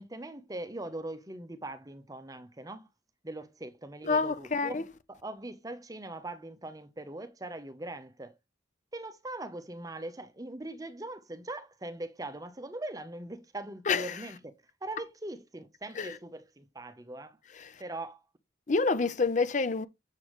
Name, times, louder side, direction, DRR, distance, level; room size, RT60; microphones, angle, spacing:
voice 1, 0.0-2.9 3.2-8.3 8.9-14.5 14.8-17.4 17.8-18.2, right 2 dB, 20° right, 0.8 m, -41 dB
voice 2, 4.0-4.8 13.9-14.2 16.0-16.2 17.5-17.8 18.7-19.9, left 4 dB, 40° left, 0.6 m, -28 dB
7.4 x 6.9 x 3.1 m
head